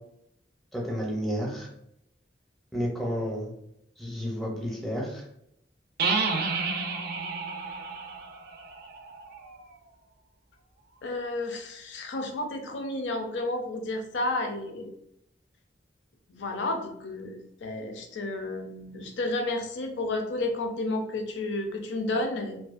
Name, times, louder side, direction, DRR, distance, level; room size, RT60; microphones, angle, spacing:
voice 1, 0.7-1.7 2.7-3.5 4.0-5.2, equal, ahead, -3 dB, 0.6 m, -31 dB
sound 1, 6.0-9.6, right 4 dB, 60° right, 0.4 m, -31 dB
voice 2, 11.0-14.9 16.3-22.6, left 2 dB, 75° left, 4 dB, 0.5 m, -31 dB
2.5 x 2.2 x 2.4 m, 0.76 s
head